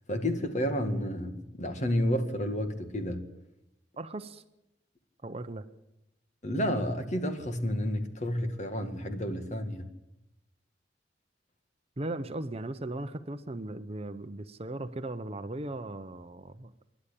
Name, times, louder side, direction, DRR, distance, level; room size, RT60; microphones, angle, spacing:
voice 1, 0.1-3.3 6.4-9.9, equal, 40° left, 2.0 m, -30 dB
voice 2, 4.0-4.4 5.2-5.6 12.0-16.7, right 2 dB, 35° right, 0.8 m, -37 dB
27.0 x 11.5 x 8.5 m
head